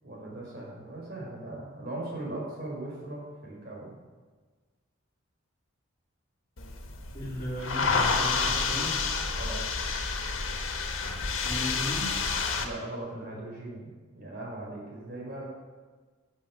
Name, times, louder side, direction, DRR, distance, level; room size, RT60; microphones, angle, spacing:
voice 1, 0.0-4.0 9.3-9.6 12.6-15.5, right 2 dB, 50° right, -3 dB, 4.6 m, -39 dB
sound 1, 6.6-12.6, left 4 dB, 80° left, 1.5 m, -29 dB
voice 2, 7.1-8.9 11.4-12.1, equal, 20° left, -11 dB, 3.4 m, -35 dB
12.0 x 7.6 x 6.3 m, 1.4 s
head